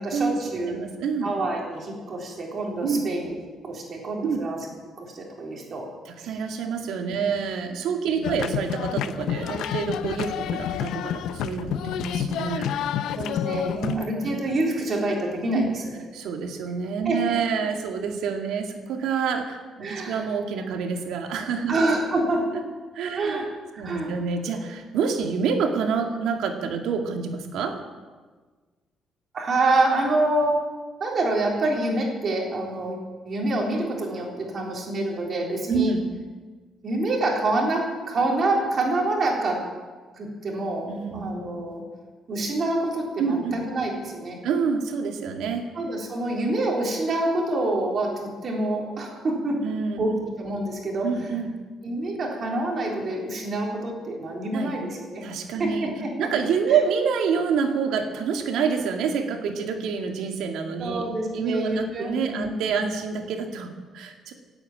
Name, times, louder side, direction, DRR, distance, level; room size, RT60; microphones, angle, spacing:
voice 1, 0.0-0.8 1.2-3.4 3.6-4.6 5.0-5.9 6.2-6.3 8.1-8.5 13.1-15.6 17.1-17.2 19.8-20.2 21.7-22.4 23.1-23.4 23.7-24.1 29.3-30.6 31.0-35.9 36.8-39.6 40.2-41.8 42.3-44.4 45.7-49.6 50.0-50.1 50.4-51.1 51.8-55.2 55.6-56.1 56.7-56.8 60.8-62.5, right 2 dB, 35° right, -1 dB, 3.7 m, -26 dB
voice 2, 0.7-1.3 2.8-3.1 4.2-4.4 6.1-12.7 13.8-14.3 15.5-15.7 16.1-21.7 22.9-23.4 23.8-27.8 35.7-36.0 40.9-41.3 43.2-43.6 44.4-45.7 49.6-50.1 51.0-51.6 54.5-54.7 55.2-55.9 56.2-61.0 61.3-64.3, right 6 dB, 85° right, 3 dB, 2.2 m, -27 dB
sound 1, 8.2-14.1, left 10 dB, 85° left, 0.6 m, -29 dB
17.0 x 8.8 x 8.9 m, 1.4 s
cardioid pair, 170°, 0 cm